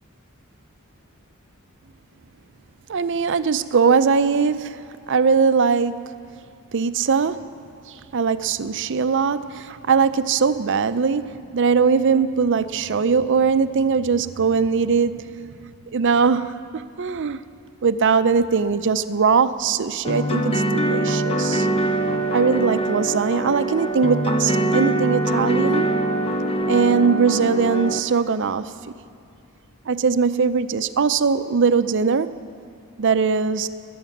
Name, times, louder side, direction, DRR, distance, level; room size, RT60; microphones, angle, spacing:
voice 1, 2.9-6.1 6.7-7.5 7.9-17.4 17.8-21.7 22.3-26.0 26.7-28.7 29.9-32.4 33.0-33.7, right 5 dB, 55° right, 0.5 m, -21 dB
sound 1, 20.0-28.0, right 1 dB, 25° left, 0.7 m, -23 dB
21.0 x 9.3 x 7.2 m
head